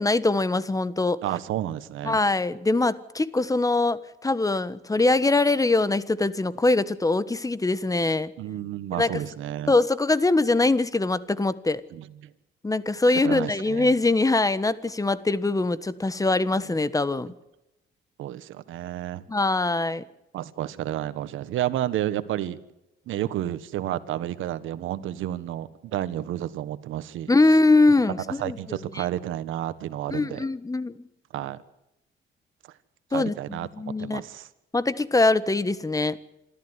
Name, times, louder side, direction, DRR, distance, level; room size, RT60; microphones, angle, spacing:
voice 1, 0.0-1.2 2.0-8.3 9.0-9.2 9.7-11.8 12.6-17.3 19.3-20.0 27.3-29.0 30.1-31.0 33.1-34.2 34.7-36.2, left 2 dB, 15° left, 16 dB, 1.3 m, -23 dB
voice 2, 1.2-2.2 8.4-9.7 11.9-12.3 13.2-13.9 18.2-19.2 20.3-22.6 23.1-27.3 28.4-30.5 31.3-31.6 33.1-33.7 34.0-34.5, right 12 dB, 85° right, 14 dB, 1.5 m, -31 dB
27.0 x 13.5 x 9.8 m, 0.91 s
cardioid pair, 90°, 20 cm